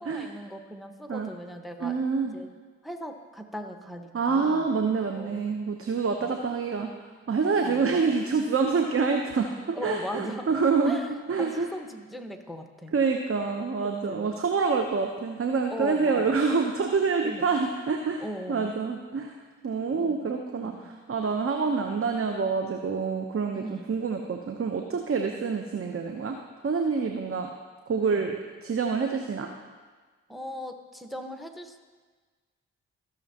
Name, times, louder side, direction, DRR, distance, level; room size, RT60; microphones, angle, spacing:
voice 1, 0.0-2.0 2.3-2.5 2.8-4.7 5.1-5.4 6.2-6.3 7.6-8.0 9.7-10.6 10.8-12.9 13.8-14.3 15.7-16.4 17.2-17.4 18.2-18.7 20.0-20.3 20.6-20.9 23.5-23.9 28.1-28.2 30.3-31.8, equal, ahead, 5 dB, 1.3 m, -39 dB
voice 2, 1.8-2.3 4.1-6.9 7.3-11.0 11.3-11.7 12.9-18.2 18.5-19.3 19.6-23.6 23.9-26.4 26.6-27.5 27.9-29.5, right 5 dB, 40° right, 4 dB, 0.9 m, -27 dB
15.5 x 6.5 x 2.9 m, 1.4 s
hypercardioid pair, 40°, 36 cm